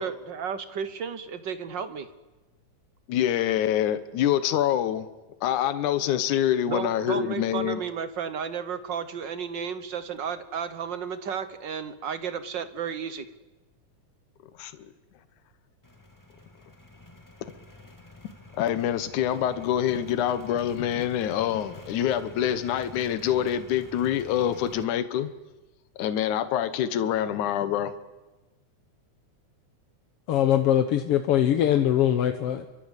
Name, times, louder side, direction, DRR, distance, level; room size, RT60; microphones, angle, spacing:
voice 1, 0.0-2.1 6.7-13.3, right 7 dB, 55° right, 11 dB, 1.3 m, -33 dB
voice 2, 3.1-5.1 5.4-7.8 14.6-14.9 18.6-25.3 26.0-27.9, left 10 dB, 80° left, 11 dB, 2.6 m, -26 dB
sound 1, 15.8-24.8, left 2 dB, 10° left, 1.6 m, -48 dB
voice 3, 30.3-32.7, left 11 dB, 60° left, 7 dB, 1.7 m, -22 dB
29.0 x 24.0 x 8.3 m, 1.1 s
omnidirectional pair, 3.5 m